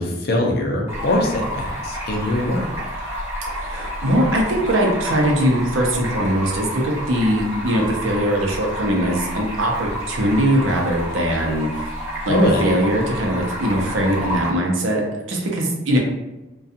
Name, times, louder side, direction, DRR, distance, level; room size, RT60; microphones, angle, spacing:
voice 1, 0.0-2.6 12.3-12.6, left 1 dB, 55° left, 1 dB, 0.5 m, -21 dB
Stream, 0.9-14.5, equal, 15° right, 0.7 m, -30 dB
voice 2, 3.4-11.9 12.3-16.0, right 1 dB, 75° right, 0 dB, 0.6 m, -21 dB
2.4 x 2.2 x 2.6 m, 1.0 s
head